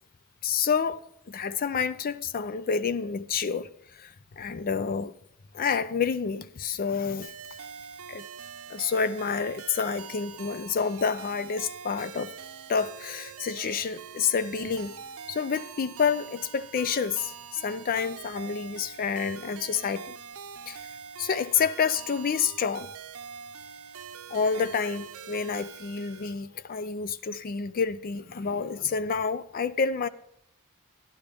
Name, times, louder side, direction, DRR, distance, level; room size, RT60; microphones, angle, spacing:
voice 1, 0.4-3.7 3.9-5.1 5.5-7.3 8.1-8.2 8.7-12.3 12.7-15.0 15.3-20.1 20.7-20.9 21.2-22.9 24.3-30.1, left 6 dB, 40° left, 0.4 m, -29 dB
sound 1, 7.2-26.3, right 7 dB, 70° right, 0.6 m, -44 dB
13.0 x 11.0 x 3.4 m
head